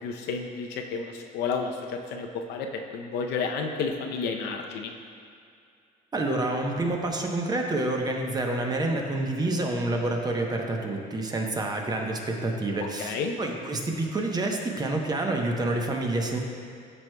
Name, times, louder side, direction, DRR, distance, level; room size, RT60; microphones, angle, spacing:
voice 1, 0.0-4.9 13.0-13.3, left 5 dB, 85° left, 3 dB, 0.6 m, -31 dB
voice 2, 6.1-16.4, right 2 dB, 25° right, 2 dB, 0.8 m, -28 dB
12.0 x 4.6 x 2.2 m, 2.4 s
cardioid pair, 110°, 17 cm